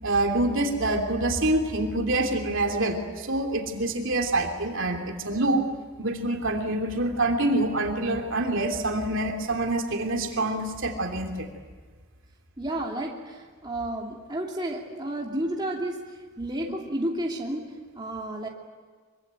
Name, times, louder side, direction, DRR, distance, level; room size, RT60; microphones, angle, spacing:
voice 1, 0.0-5.6 6.0-11.5, right 2 dB, 55° right, 3 dB, 3.2 m, -26 dB
voice 2, 12.6-18.5, right 1 dB, 20° right, -1 dB, 2.6 m, -32 dB
25.0 x 24.5 x 9.2 m, 1.5 s
head